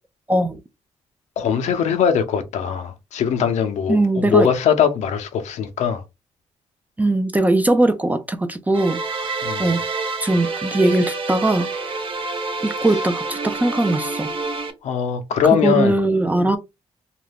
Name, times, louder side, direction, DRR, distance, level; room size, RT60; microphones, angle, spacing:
voice 1, 0.3-0.6 3.9-4.5 7.0-9.3 9.6-9.8 10.2-11.7 12.6-14.3 15.6-16.6, right 2 dB, 15° right, 0.4 m, -20 dB
voice 2, 1.4-6.0 9.4-9.7 14.8-16.0, left 7 dB, 80° left, 0.6 m, -21 dB
sound 1, 8.7-14.7, right 3 dB, 45° right, 0.6 m, -28 dB
2.4 x 2.2 x 3.3 m
cardioid pair, 110°, 12 cm